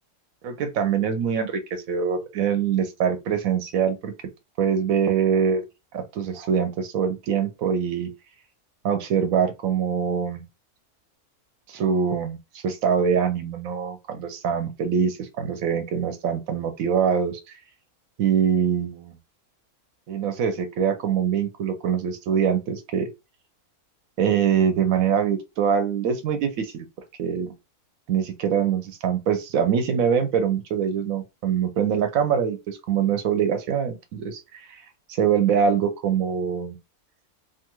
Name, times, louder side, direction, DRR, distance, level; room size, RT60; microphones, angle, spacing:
voice 1, 0.4-4.1 4.6-5.6 5.9-8.1 8.8-10.4 11.7-12.4 12.6-17.5 18.2-19.2 20.1-23.1 24.2-26.9 27.2-27.5 28.1-34.7 35.1-36.8, right 7 dB, 70° right, 0.9 m, -24 dB
2.7 x 2.4 x 2.9 m
omnidirectional pair, 1.6 m